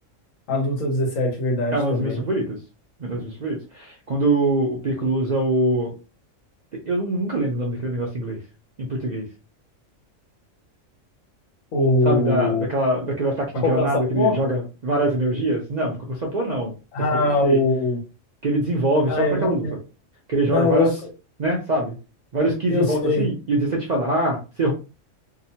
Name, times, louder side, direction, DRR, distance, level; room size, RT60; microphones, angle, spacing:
voice 1, 0.5-2.2 11.7-12.7 13.6-13.9 14.1-14.4 16.9-18.0 19.1-19.8 20.5-20.9 22.7-23.3, left 2 dB, 85° left, 2 dB, 1.3 m, -22 dB
voice 2, 1.7-2.6 3.0-5.9 6.9-8.4 8.8-9.3 12.0-16.7 17.2-17.6 18.4-19.7 20.3-20.9 21.4-22.0 22.3-24.7, right 1 dB, 55° right, -1 dB, 0.4 m, -23 dB
2.8 x 2.0 x 2.7 m, 0.32 s
omnidirectional pair, 1.3 m